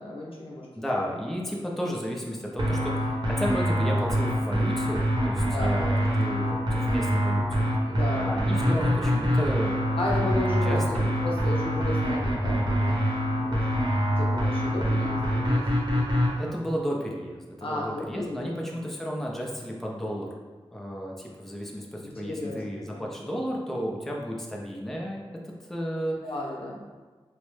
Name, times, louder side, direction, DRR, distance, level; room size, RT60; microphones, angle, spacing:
voice 1, 0.0-0.7 5.4-5.8 7.8-8.5 10.0-11.0 11.2-13.0 13.4-13.7 14.2-15.7 17.6-18.6 22.0-22.6 22.9-23.1 26.2-26.8, left 1 dB, 65° left, -3 dB, 0.7 m, -33 dB
voice 2, 0.8-7.7 8.1-9.8 10.5-11.1 16.4-20.4 20.7-26.2, equal, 5° left, -2 dB, 0.4 m, -33 dB
sound 1, 2.6-16.3, equal, 50° right, 0.8 m, -25 dB
3.1 x 2.0 x 3.1 m, 1.4 s
wide cardioid pair, 60°, 10 cm